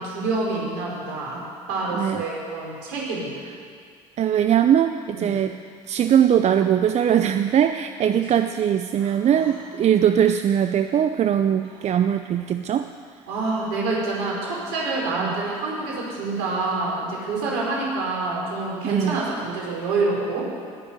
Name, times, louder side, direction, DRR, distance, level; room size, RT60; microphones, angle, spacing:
voice 1, 0.0-1.4 1.7-3.3 5.1-5.3 8.9-9.5 13.3-20.5, right 3 dB, 75° right, -3 dB, 4.8 m, -27 dB
voice 2, 4.2-5.5 5.9-12.9 15.2-15.3 18.8-19.2, right 9 dB, 45° right, 9 dB, 0.6 m, -20 dB
18.5 x 7.2 x 7.9 m, 2.1 s
hypercardioid pair, 60°, 15 cm